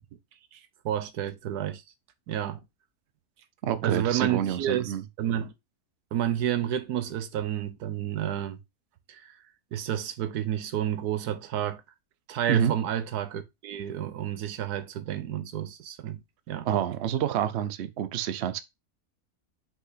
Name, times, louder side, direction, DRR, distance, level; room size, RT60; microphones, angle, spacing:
voice 1, 0.8-1.8 2.3-2.6 3.8-4.9 5.2-5.5 6.1-8.6 9.1-9.3 9.7-11.8 12.3-16.2 16.5-16.7, right 10 dB, 85° right, 1.3 m, -30 dB
voice 2, 3.6-5.0 12.5-12.7 16.6-18.6, right 10 dB, 55° right, 0.8 m, -28 dB
5.7 x 5.5 x 4.0 m
omnidirectional pair, 1.6 m